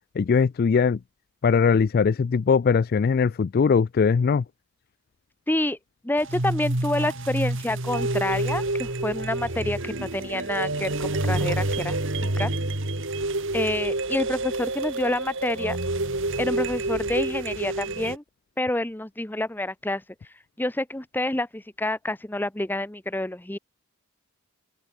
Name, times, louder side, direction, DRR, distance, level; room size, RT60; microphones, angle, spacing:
voice 1, 0.2-1.0 1.4-4.4, left 5 dB, 45° left, 0.3 m, -20 dB
voice 2, 5.5-5.8 6.0-12.5 13.5-15.8 16.4-18.2 18.6-20.0 20.6-23.6, left 1 dB, 10° left, 0.7 m, -28 dB
sound 1, 6.2-18.2, right 2 dB, 60° right, 2.5 m, -28 dB
open air
head